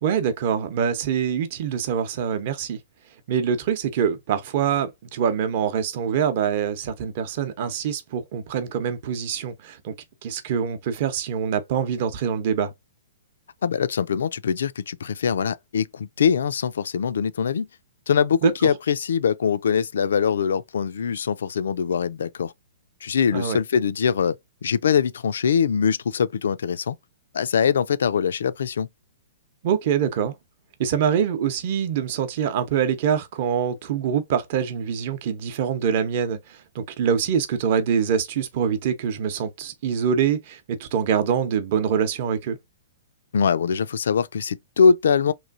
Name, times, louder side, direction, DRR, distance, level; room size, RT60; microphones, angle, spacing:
voice 1, 0.0-2.8 3.3-9.9 10.2-12.7 18.4-18.5 23.3-23.6 29.6-30.3 30.8-42.6, right 8 dB, 45° right, 0.7 m, -24 dB
voice 2, 13.6-17.7 18.1-22.5 23.0-24.4 24.6-27.0 27.3-28.9 43.3-45.3, left 6 dB, 80° left, 0.3 m, -22 dB
3.1 x 2.6 x 2.4 m
hypercardioid pair, 150°, 0 cm